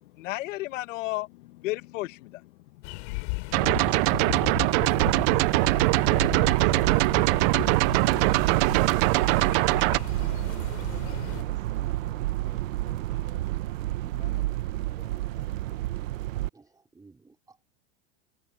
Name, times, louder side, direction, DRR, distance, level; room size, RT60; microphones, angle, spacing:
voice 1, 0.0-2.5 3.3-3.6, left 18 dB, 80° left, 1.3 m, -34 dB
sound 1, 2.8-11.4, left 32 dB, 60° left, 5.2 m, -36 dB
sound 2, 3.5-10.0, right 25 dB, 50° right, 0.5 m, -22 dB
sound 3, 4.9-16.5, right 16 dB, 85° right, 1.3 m, -30 dB
voice 2, 6.5-7.3 8.4-8.9 9.8-15.9, left 10 dB, 25° left, 2.4 m, -54 dB
voice 3, 16.5-17.6, right 3 dB, 10° right, 4.1 m, -56 dB
supercardioid pair, 150°, 38 cm